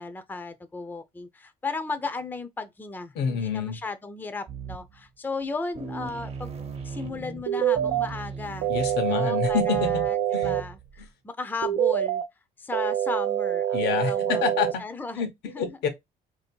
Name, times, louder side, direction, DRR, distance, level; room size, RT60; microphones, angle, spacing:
voice 1, 0.0-6.5 6.8-12.2 12.6-14.4 14.8-15.8, left 3 dB, 10° left, 0.5 m, -35 dB
voice 2, 3.1-3.8 8.7-10.0 10.3-10.5 11.0-11.1 13.7-14.8 15.2-15.9, left 6 dB, 80° left, 1.0 m, -27 dB
sound 1, 4.5-5.1 5.4-5.5 5.8-11.1, right 4 dB, 35° right, 0.8 m, -38 dB
sound 2, 7.5-8.1 8.6-10.6 11.6-12.2 12.7-14.7, right 11 dB, 85° right, 0.6 m, -25 dB
3.1 x 2.7 x 4.3 m
cardioid pair, 110°, 17 cm